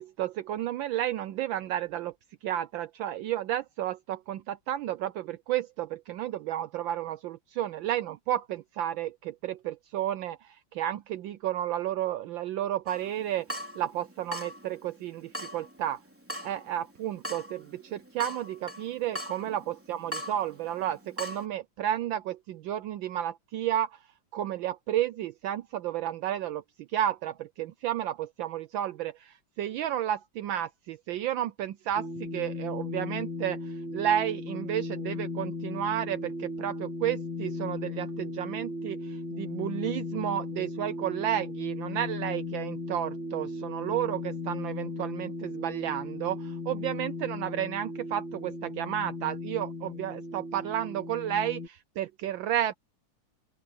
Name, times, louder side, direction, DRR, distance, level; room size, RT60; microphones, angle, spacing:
voice 1, 0.0-2.1 2.4-13.5 13.8-16.0 16.4-24.0 24.3-26.6 26.9-52.7, right 11 dB, 75° right, 1.3 m, -32 dB
Water tap faucet / Drip, 12.9-21.5, equal, 5° right, 4.0 m, -42 dB
sound 1, 32.0-51.7, left 2 dB, 50° left, 3.6 m, -36 dB
open air
omnidirectional pair, 2.4 m